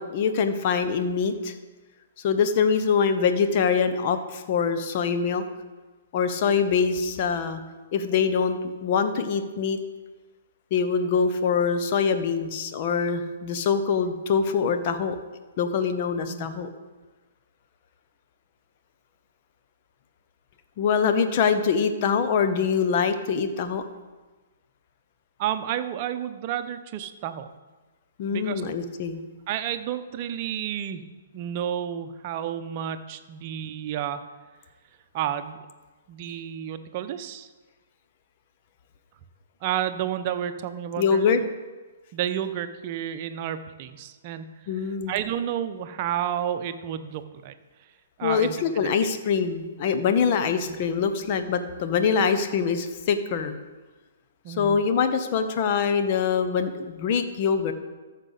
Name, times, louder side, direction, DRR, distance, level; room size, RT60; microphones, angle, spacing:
voice 1, 0.0-1.6 2.2-5.4 6.1-7.6 7.9-9.8 10.7-15.2 15.6-16.7 20.8-23.8 28.2-29.2 41.0-41.4 44.7-45.1 48.2-53.6 54.5-57.7, left 6 dB, 40° left, 8 dB, 1.0 m, -24 dB
voice 2, 25.4-27.5 28.3-28.6 29.5-31.0 31.3-34.2 35.1-35.6 36.1-37.5 39.6-41.5 42.1-44.4 44.7-47.5 48.2-48.9 50.7-50.8 54.4-54.8, right 10 dB, 40° right, 9 dB, 0.8 m, -31 dB
14.0 x 6.6 x 4.1 m, 1.3 s
figure-of-eight pair, 120°, 0 cm